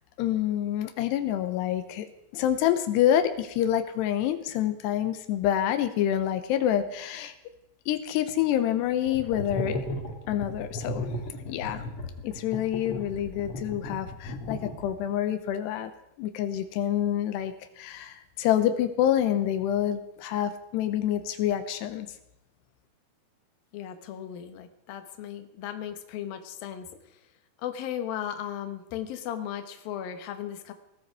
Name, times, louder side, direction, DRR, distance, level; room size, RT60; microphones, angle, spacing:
voice 1, 0.2-2.1 2.3-7.3 7.9-9.8 10.3-11.1 11.5-11.8 12.2-15.9 16.2-22.1, left 11 dB, 90° left, 9 dB, 3.1 m, -27 dB
sound 1, 9.1-15.1, left 1 dB, 45° left, 2.1 m, -35 dB
voice 2, 23.7-26.9 27.6-30.7, left 10 dB, 65° left, 7 dB, 2.9 m, -36 dB
19.5 x 14.5 x 4.8 m, 0.84 s
omnidirectional pair, 4.7 m